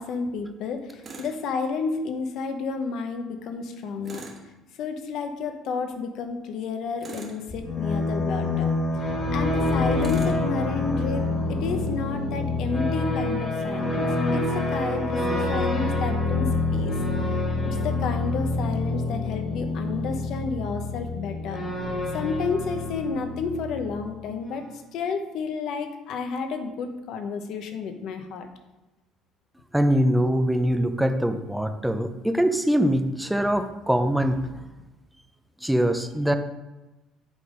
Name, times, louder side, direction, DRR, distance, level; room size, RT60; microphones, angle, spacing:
voice 1, 0.0-4.2 4.8-8.7 9.0-16.9 17.3-17.4 17.6-21.6 22.1-28.5, left 5 dB, 60° left, 6 dB, 0.9 m, -31 dB
Tools, 1.0-1.4 4.0-4.5 7.0-7.4 10.0-10.4, right 3 dB, 30° right, 1.4 m, -41 dB
sound 1, 7.5-24.1, left 2 dB, 35° left, 2.0 m, -27 dB
voice 2, 29.7-34.5 35.6-36.3, equal, 5° right, 8 dB, 0.5 m, -23 dB
8.4 x 3.9 x 5.1 m, 1.1 s
cardioid pair, 145°, 0 cm